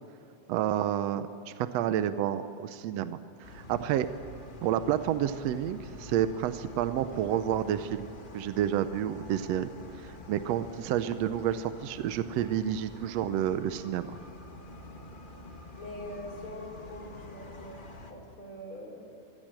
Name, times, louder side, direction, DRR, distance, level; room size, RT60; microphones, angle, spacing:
voice 1, 0.5-4.1 4.6-9.7 10.0-14.2, right 10 dB, 75° right, 11 dB, 1.7 m, -30 dB
sound 1, 3.4-18.1, left 1 dB, 25° left, 1.1 m, -47 dB
voice 2, 15.8-17.8 18.1-19.3, left 1 dB, 45° left, -1 dB, 4.5 m, -43 dB
23.5 x 15.5 x 8.9 m, 2.7 s
omnidirectional pair, 3.3 m